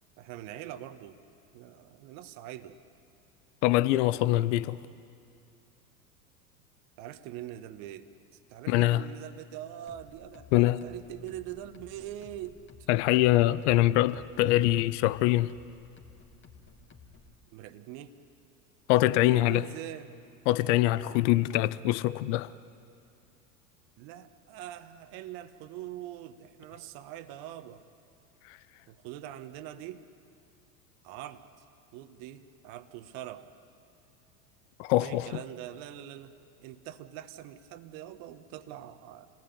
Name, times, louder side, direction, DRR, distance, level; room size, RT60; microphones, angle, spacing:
voice 1, 0.2-1.2 1.5-2.8 7.0-8.1 8.5-12.6 17.5-18.2 19.2-20.1 24.0-27.8 28.9-30.1 31.0-31.5 31.9-33.5 35.0-36.3 36.6-39.3, right 12 dB, 50° right, 1.5 m, -43 dB
voice 2, 3.6-4.8 8.7-9.0 10.5-10.8 12.9-15.5 18.9-19.7 20.5-22.5 28.5-28.6 34.8-35.3, left 16 dB, 50° left, 0.7 m, -24 dB
sound 1, 9.9-17.4, left 4 dB, 25° left, 2.7 m, -54 dB
28.0 x 19.5 x 9.9 m
hypercardioid pair, 85°, 45 cm